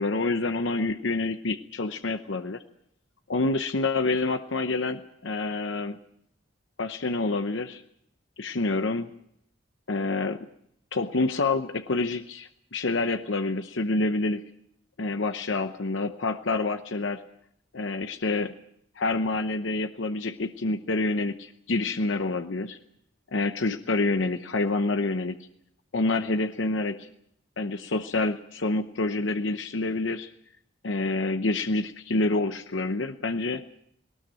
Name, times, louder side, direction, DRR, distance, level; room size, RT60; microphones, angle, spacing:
voice 1, 0.0-2.6 3.3-6.0 6.8-7.8 8.4-9.1 9.9-10.4 10.9-14.4 15.0-17.2 17.7-18.5 19.0-22.8 23.3-25.4 25.9-27.1 27.6-30.3 30.8-33.6, left 3 dB, 85° left, 8 dB, 0.9 m, -27 dB
19.5 x 18.5 x 8.9 m, 0.73 s
head